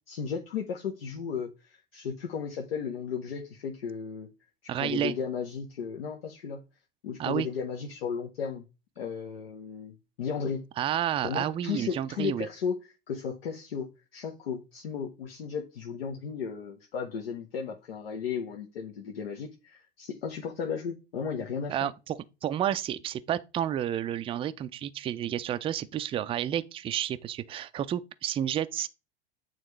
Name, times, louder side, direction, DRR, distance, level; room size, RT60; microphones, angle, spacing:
voice 1, 0.1-4.3 4.8-6.6 7.0-8.6 9.0-10.6 11.2-21.8, left 6 dB, 75° left, 0.9 m, -35 dB
voice 2, 4.7-5.2 7.2-7.5 10.8-12.5 21.7-28.9, right 10 dB, 20° right, 0.4 m, -30 dB
8.9 x 3.5 x 3.2 m
hypercardioid pair, 85°, 30 cm